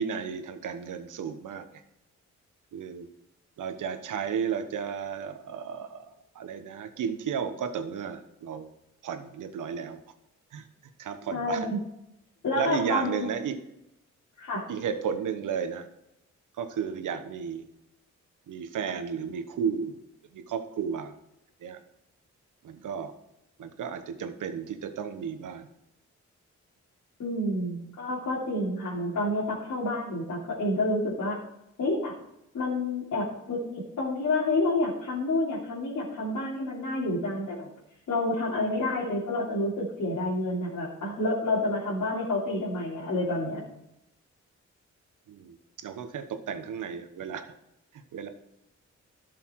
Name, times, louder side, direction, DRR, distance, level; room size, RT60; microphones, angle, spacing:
voice 1, 0.0-1.8 2.7-3.1 3.6-8.7 9.0-10.0 10.5-10.7 11.0-11.7 12.5-13.6 14.7-15.9 16.6-17.7 18.5-20.0 20.3-21.1 21.6-21.8 22.6-23.1 23.6-25.7 45.3-47.5 47.9-48.3, right 7 dB, 90° right, 8 dB, 1.2 m, -33 dB
voice 2, 11.3-11.8 12.4-13.3 14.4-14.6 27.2-31.4 31.8-32.2 32.5-37.7 38.1-43.6, left 2 dB, 75° left, -7 dB, 3.3 m, -29 dB
12.5 x 6.9 x 4.7 m, 0.85 s
cardioid pair, 65°, 30 cm